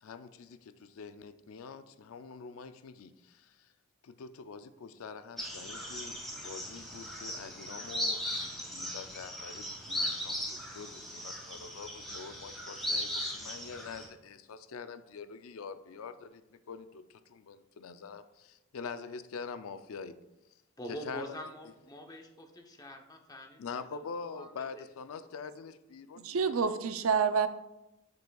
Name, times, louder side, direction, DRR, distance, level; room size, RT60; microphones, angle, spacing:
voice 1, 0.0-3.5 4.0-16.4 16.7-17.0 17.3-20.2 20.9-21.4 23.6-26.6, left 5 dB, 80° left, 11 dB, 0.4 m, -45 dB
sound 1, 5.4-14.1, left 1 dB, ahead, 1.6 m, -38 dB
voice 2, 20.8-23.8 24.2-24.8, equal, 20° left, 4 dB, 0.7 m, -45 dB
voice 3, 26.2-27.5, right 6 dB, 75° right, 11 dB, 0.5 m, -28 dB
7.9 x 6.8 x 2.3 m, 0.95 s
head